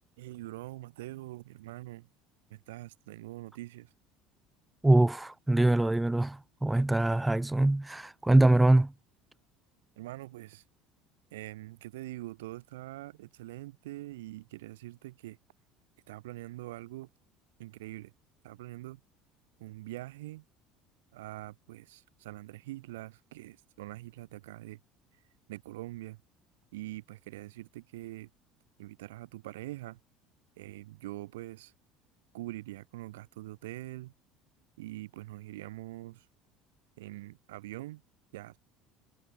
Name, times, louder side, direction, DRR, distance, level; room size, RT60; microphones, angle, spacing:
voice 1, 0.2-2.1 2.5-3.9 10.0-10.6 11.3-15.4 16.1-17.1 17.6-18.1 18.4-19.0 19.6-20.4 21.1-24.8 25.5-26.2 26.7-28.3 28.8-30.0 30.6-31.7 32.3-34.1 34.8-36.3 37.0-38.0 38.3-38.6, right 17 dB, 70° right, 2.1 m, -44 dB
voice 2, 4.8-8.9, right 2 dB, 10° right, 1.0 m, -24 dB
figure-of-eight pair, 65°, 0 cm